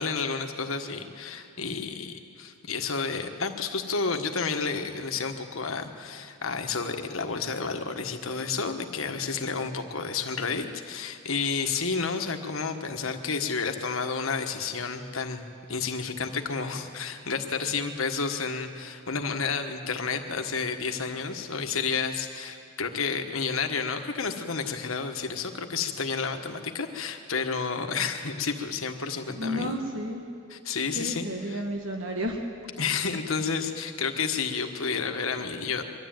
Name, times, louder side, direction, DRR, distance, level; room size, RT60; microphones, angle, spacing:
voice 1, 0.0-29.8 30.5-31.6 32.8-35.8, left 5 dB, 70° left, 6 dB, 1.5 m, -31 dB
voice 2, 29.4-30.2 30.9-32.4, equal, 65° right, 2 dB, 1.5 m, -31 dB
23.0 x 13.0 x 9.1 m, 2.4 s
head